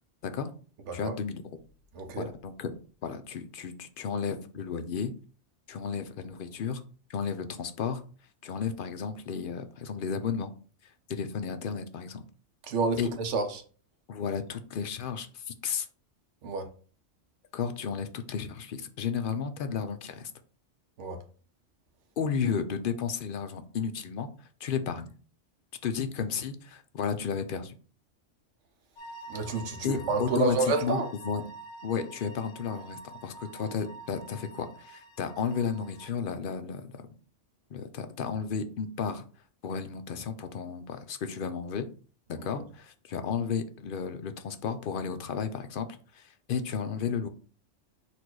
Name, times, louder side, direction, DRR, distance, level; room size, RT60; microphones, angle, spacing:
voice 1, 0.9-1.4 2.2-2.7 3.0-5.1 5.7-6.8 7.1-8.0 8.4-10.5 11.1-12.2 13.0-13.1 14.1-15.9 17.5-20.3 22.2-25.1 25.8-27.7 29.8-31.4 31.8-36.9 37.7-39.2 39.6-41.9 42.3-47.3, left 6 dB, 60° left, 0.6 m, -33 dB
voice 2, 1.9-2.3 12.7-13.6 16.4-16.7 21.0-21.2 29.3-31.1 42.4-42.6, right 3 dB, 80° right, 1.1 m, -29 dB
sound 1, 29.0-36.1, right 3 dB, 80° left, 1.0 m, -46 dB
4.2 x 2.6 x 4.5 m
omnidirectional pair, 1.2 m